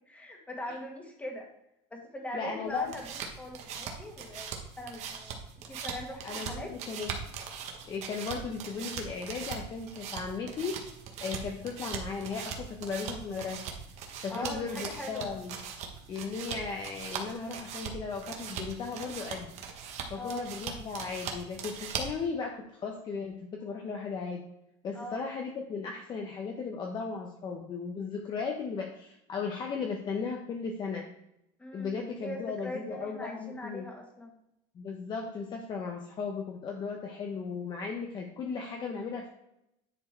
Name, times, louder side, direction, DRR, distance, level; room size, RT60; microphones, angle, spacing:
voice 1, 0.1-1.5 1.9-3.0 3.4-4.5 4.8-5.4 5.7-6.7 14.3-15.3 20.2-20.4 24.9-25.2 31.6-34.4, left 1 dB, 10° left, 1 dB, 1.7 m, -41 dB
voice 2, 2.3-2.9 6.2-7.2 7.9-10.8 11.2-13.6 14.2-15.6 16.1-19.5 20.1-24.4 24.8-31.1 31.7-33.8 34.7-39.3, left 5 dB, 30° left, 1 dB, 0.9 m, -36 dB
sound 1, 2.7-22.3, right 6 dB, 50° right, 1.4 m, -40 dB
10.0 x 4.2 x 4.5 m, 0.82 s
cardioid pair, 150°, 15 cm